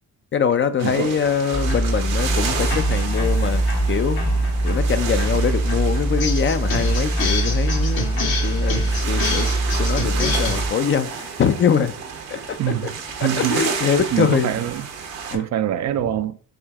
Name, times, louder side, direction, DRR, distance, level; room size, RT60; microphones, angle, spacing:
voice 1, 0.3-3.6 3.9-8.8 9.1-9.5 9.8-11.9 12.3-12.6 13.2-14.7 15.3-15.4, left 7 dB, 35° left, 0.5 m, -23 dB
voice 2, 0.8-1.2 12.6-14.9 15.3-16.4, right 11 dB, 50° right, 0.4 m, -25 dB
sound 1, 0.8-15.4, right 6 dB, 80° right, 1.1 m, -32 dB
sound 2, 1.5-10.7, right 1 dB, 75° left, 1.8 m, -22 dB
4.9 x 2.7 x 3.5 m
supercardioid pair, 70°, 37 cm